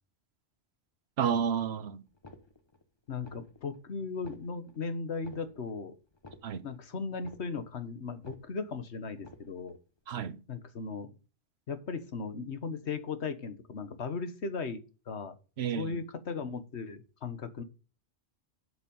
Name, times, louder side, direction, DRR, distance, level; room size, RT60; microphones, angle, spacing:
voice 1, 1.2-2.0 6.4-6.7 10.1-10.4 15.6-16.0, right 8 dB, 75° right, 1.1 m, -31 dB
sound 1, 1.3-1.8 2.1-2.8 3.1-3.8 4.1-4.8 5.1-5.8 6.1-6.8 7.1-7.8 8.1-8.8 9.1-9.8, left 2 dB, 25° left, 1.0 m, -53 dB
voice 2, 3.1-5.9 6.6-9.8 10.5-11.2 11.7-14.8 15.1-15.4 15.8-17.6, left 4 dB, 90° left, 1.6 m, -37 dB
8.2 x 7.5 x 5.4 m
omnidirectional pair, 1.1 m